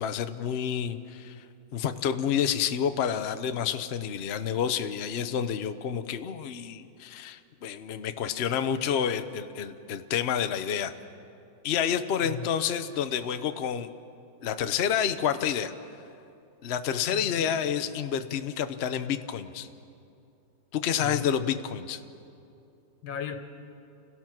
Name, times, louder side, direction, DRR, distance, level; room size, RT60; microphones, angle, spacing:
voice 1, 0.0-1.4 1.7-10.9 11.6-13.9 14.4-15.7 16.6-19.7 20.7-22.0, left 8 dB, 50° left, 9 dB, 0.8 m, -29 dB
voice 2, 17.1-17.7 21.0-21.2 23.0-23.4, left 8 dB, 90° left, 7 dB, 2.1 m, -37 dB
29.5 x 17.0 x 6.0 m, 2.6 s
omnidirectional pair, 2.0 m